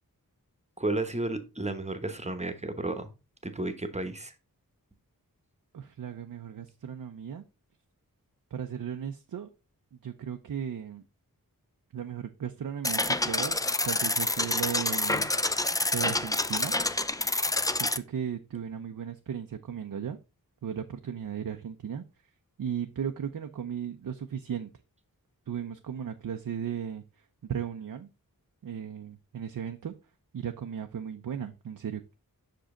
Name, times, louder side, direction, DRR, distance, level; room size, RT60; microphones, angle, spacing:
voice 1, 0.8-3.1 3.4-4.3, right 2 dB, 20° right, 1.0 m, -32 dB
voice 2, 5.7-7.4 8.5-9.5 10.0-11.0 11.9-13.6 13.8-15.6 15.9-16.7 17.7-20.2 20.6-22.0 22.6-24.7 25.5-28.1 28.6-29.9 30.3-32.0, right 8 dB, 65° right, 0.6 m, -36 dB
sound 1, 12.8-18.0, left 2 dB, 10° left, 0.3 m, -28 dB
6.2 x 5.1 x 3.7 m
wide cardioid pair, 70°, 36 cm